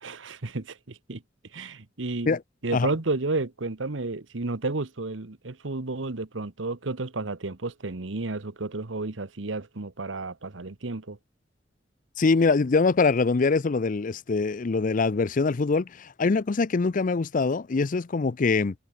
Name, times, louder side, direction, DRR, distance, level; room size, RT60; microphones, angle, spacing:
voice 1, 0.0-1.2 1.5-2.3 2.6-11.2, right 3 dB, 80° right, 1.2 m, -32 dB
voice 2, 12.2-18.7, left 4 dB, 45° left, 0.5 m, -23 dB
head